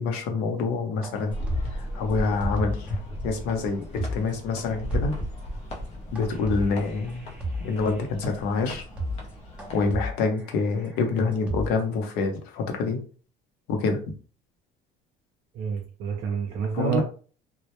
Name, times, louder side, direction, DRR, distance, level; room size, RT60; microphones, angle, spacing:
voice 1, 0.0-1.4 1.7-5.1 6.1-7.3 7.6-8.8 9.7-13.0 13.7-14.0 16.7-17.0, left 4 dB, 70° left, 4 dB, 0.6 m, -26 dB
sound 1, 1.0-3.0 3.3-3.4 3.8-4.3 4.6-4.7 4.9-5.4 6.2-8.0 8.5-8.6 8.8-9.3 9.6-12.1, equal, 5° right, 0.6 m, -34 dB
sound 2, 1.3-10.0, equal, 40° left, 0.6 m, -35 dB
voice 2, 15.5-17.0, right 7 dB, 55° right, 0 dB, 0.5 m, -29 dB
2.1 x 2.0 x 2.8 m, 0.40 s
cardioid pair, 150°, 17 cm